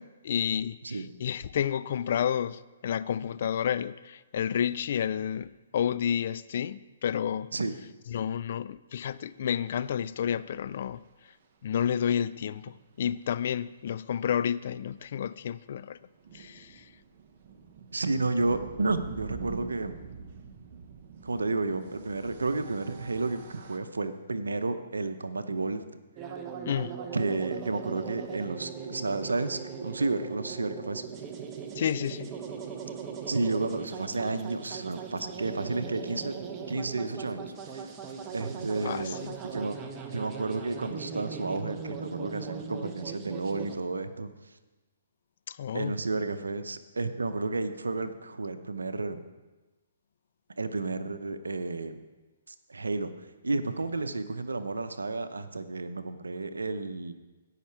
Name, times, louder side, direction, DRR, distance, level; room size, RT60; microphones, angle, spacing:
voice 1, 0.0-7.5 8.1-11.0 11.6-16.0 16.3-16.9 26.7-27.0 31.8-32.3 38.8-39.4 45.5-45.9, left 9 dB, 55° left, 0.4 m, -30 dB
sound 1, 11.0-11.1 12.4-12.5 12.7-12.8 13.0-13.2 15.7-23.8, right 6 dB, 50° right, 1.1 m, -45 dB
voice 2, 17.9-20.0 21.2-25.8 27.1-31.0 33.3-36.4 36.7-37.5 38.3-39.2 39.4-39.8 40.1-44.3 45.7-49.2 50.6-52.0 52.7-53.1 53.4-57.1, right 3 dB, 90° right, 0.8 m, -31 dB
sound 2, 26.2-43.7, right 6 dB, 25° right, 1.1 m, -39 dB
16.5 x 5.9 x 4.6 m
hypercardioid pair, 135°, 0 cm